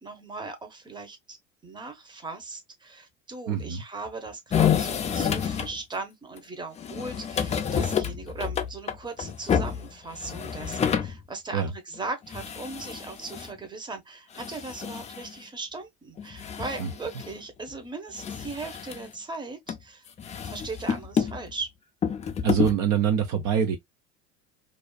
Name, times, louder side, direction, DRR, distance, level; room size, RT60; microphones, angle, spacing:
voice 1, 0.0-1.4 1.6-20.1 20.4-21.7, right 3 dB, 15° right, 0.8 m, -38 dB
voice 2, 3.5-3.8 11.5-11.7 16.8-16.9 22.4-23.8, right 8 dB, 50° right, 0.6 m, -24 dB
sound 1, 4.5-5.8 6.4-6.5 6.8-11.2 11.6-11.7 11.9-12.0 12.2-13.6 14.3-15.4 16.2-17.4 17.7-17.8 18.2-19.1 19.7-19.8 20.2-21.5 22.0-22.8, left 8 dB, 20° left, 0.4 m, -29 dB
2.5 x 2.3 x 2.2 m
hypercardioid pair, 80°, 35 cm